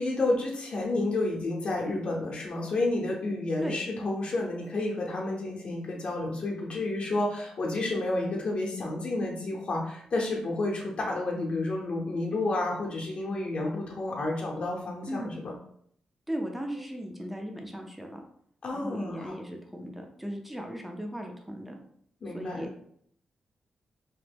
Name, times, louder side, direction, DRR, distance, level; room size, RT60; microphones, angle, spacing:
voice 1, 0.0-15.5 18.6-19.3 22.2-22.7, left 2 dB, 55° left, -1 dB, 0.7 m, -30 dB
voice 2, 16.3-18.2 18.7-21.8 22.3-22.7, equal, 5° right, 2 dB, 0.5 m, -37 dB
2.9 x 2.1 x 3.4 m, 0.66 s
cardioid pair, 100°, 2 cm